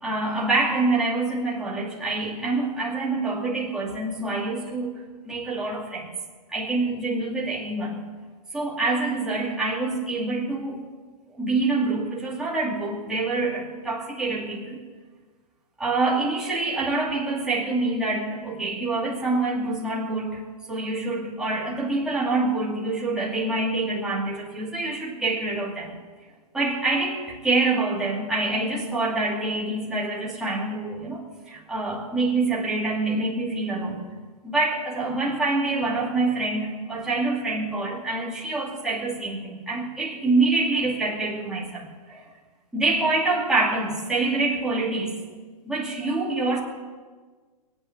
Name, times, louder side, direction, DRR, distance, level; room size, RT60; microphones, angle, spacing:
voice 1, 0.0-4.9 5.2-6.1 6.5-8.0 8.5-10.8 11.4-14.8 15.8-20.4 20.7-26.0 26.5-34.1 34.4-42.2 42.7-45.2 45.6-46.6, right 3 dB, 5° right, -6 dB, 2.6 m, -26 dB
22.5 x 8.9 x 6.8 m, 1.4 s
hypercardioid pair, 160°, 20 cm